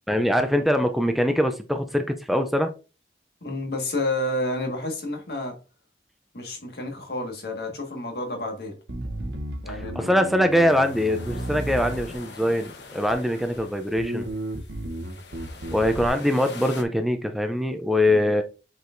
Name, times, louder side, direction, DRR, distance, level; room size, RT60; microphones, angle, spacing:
voice 1, 0.1-2.7 9.7-14.3 15.7-18.4, left 1 dB, ahead, 0.4 m, -23 dB
voice 2, 3.4-5.6 6.3-8.8 9.6-10.1 18.1-18.3, left 1 dB, 65° left, 1.6 m, -30 dB
Bass guitar, 8.9-12.5 13.1-13.6 14.0-16.1, right 1 dB, 85° right, 1.0 m, -33 dB
sound 1, 10.5-16.8, left 3 dB, 80° left, 1.0 m, -43 dB
8.0 x 4.6 x 2.6 m
head